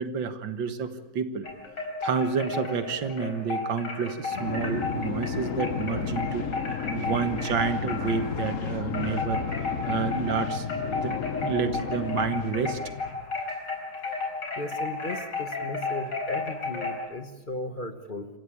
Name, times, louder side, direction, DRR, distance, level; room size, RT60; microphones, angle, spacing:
voice 1, 0.0-1.5 2.0-6.5 6.9-9.4 9.9-10.7 11.0-12.8, right 6 dB, 85° right, 10 dB, 2.1 m, -29 dB
sound 1, 1.4-8.6 8.9-17.0, left 4 dB, 70° left, 5.2 m, -33 dB
sound 2, 4.3-13.3, left 6 dB, 50° left, 1.3 m, -33 dB
voice 2, 14.6-18.3, left 2 dB, 30° left, 8 dB, 1.3 m, -36 dB
26.5 x 15.0 x 8.7 m, 1.0 s
omnidirectional pair, 2.0 m